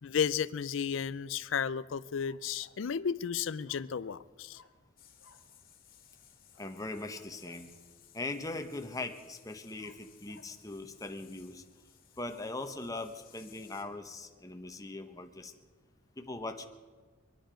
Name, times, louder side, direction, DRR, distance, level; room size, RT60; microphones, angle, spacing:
voice 1, 0.0-4.6, left 7 dB, 65° left, 17 dB, 0.4 m, -33 dB
sound 1, 2.1-2.9 3.6-4.2 4.5-4.8 5.2-5.5 6.5-7.7 9.8-10.6 12.1-12.8, left 3 dB, 90° left, 1.5 m, -62 dB
sound 2, 5.0-13.8, left 9 dB, 45° left, 1.9 m, -61 dB
voice 2, 6.6-7.7 8.1-11.6 12.2-15.5 16.2-16.7, left 2 dB, 15° left, 6 dB, 0.9 m, -40 dB
24.0 x 10.0 x 5.1 m, 1.5 s
head